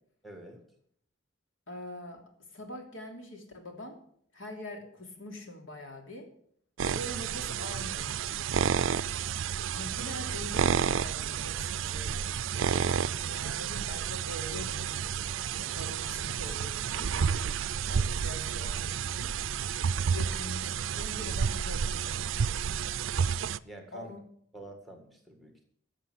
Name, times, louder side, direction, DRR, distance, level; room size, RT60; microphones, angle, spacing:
voice 1, 0.2-0.6 19.9-20.3 23.6-24.1 24.5-25.6, right 1 dB, ahead, 4 dB, 1.9 m, -48 dB
voice 2, 1.7-2.2 2.5-4.0 4.3-6.3 6.8-8.4 9.7-17.1 17.9-19.3 20.1-22.2 23.9-24.2, left 1 dB, 85° left, 3 dB, 3.0 m, -44 dB
sound 1, 6.8-23.6, right 7 dB, 80° right, 0.4 m, -31 dB
14.0 x 7.4 x 7.8 m, 0.63 s
head